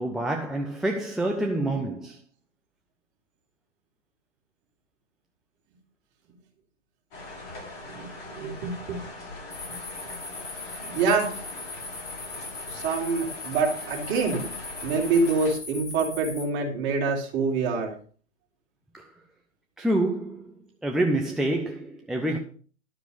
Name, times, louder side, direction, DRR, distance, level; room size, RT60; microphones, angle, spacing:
voice 1, 0.0-2.2 18.9-19.0 19.8-20.5 20.8-22.4, right 1 dB, ahead, 0.4 m, -27 dB
sound 1, 7.1-15.5, left 2 dB, 45° left, 6.6 m, -41 dB
voice 2, 7.9-9.0 10.0-10.2 10.6-11.4 12.7-14.5 14.8-17.9, right 4 dB, 30° right, 3.5 m, -26 dB
sound 2, 9.5-16.4, left 3 dB, 70° left, 6.5 m, -39 dB
12.0 x 6.8 x 5.5 m
figure-of-eight pair, 120°, 37 cm